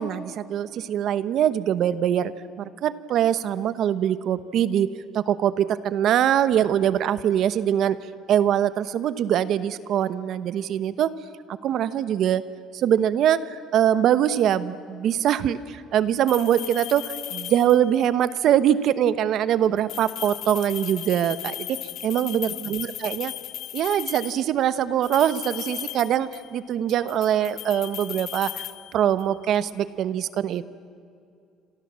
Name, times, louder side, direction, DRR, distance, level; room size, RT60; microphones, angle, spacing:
voice 1, 0.0-2.3 2.6-8.0 8.3-11.1 11.6-12.4 12.7-23.3 23.7-28.6 28.9-30.8, right 10 dB, 50° right, 15 dB, 1.0 m, -23 dB
sound 1, 16.3-18.0 19.8-24.5 25.0-26.6 26.9-29.4, left 13 dB, 50° left, 0.9 m, -36 dB
27.5 x 27.0 x 7.5 m, 2.5 s
cardioid pair, 160°, 0 cm